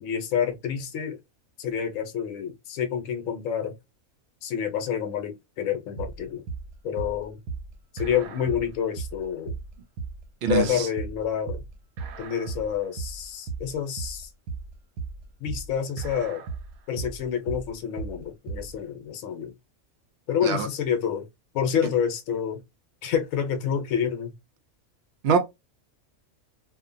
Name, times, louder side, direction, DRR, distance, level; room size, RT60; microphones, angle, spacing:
voice 1, 0.0-1.2 1.6-3.8 4.4-6.4 6.8-7.4 7.9-9.6 10.5-11.6 12.2-14.3 15.4-16.4 16.9-19.5 20.3-21.3 21.5-22.6 23.0-24.3, left 8 dB, 75° left, 1.0 m, -28 dB
sound 1, 6.0-18.7, right 4 dB, 90° right, 1.0 m, -36 dB
voice 2, 10.4-10.9 20.4-20.7 25.2-25.4, right 5 dB, 65° right, 0.6 m, -23 dB
2.7 x 2.1 x 2.5 m
omnidirectional pair, 1.5 m